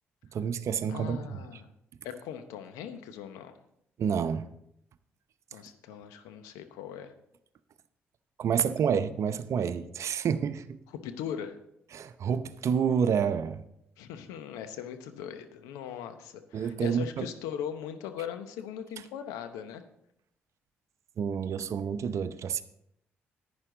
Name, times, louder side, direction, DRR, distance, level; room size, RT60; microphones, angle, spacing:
voice 1, 0.3-1.4 4.0-4.5 8.4-10.6 11.9-13.6 16.5-17.3 21.2-22.6, right 7 dB, 60° right, 12 dB, 0.7 m, -29 dB
voice 2, 0.9-1.7 2.0-3.6 5.5-7.1 10.9-11.6 14.0-19.8, left 9 dB, 80° left, 9 dB, 0.9 m, -39 dB
11.0 x 9.6 x 3.9 m, 0.76 s
hypercardioid pair, 45°, 6 cm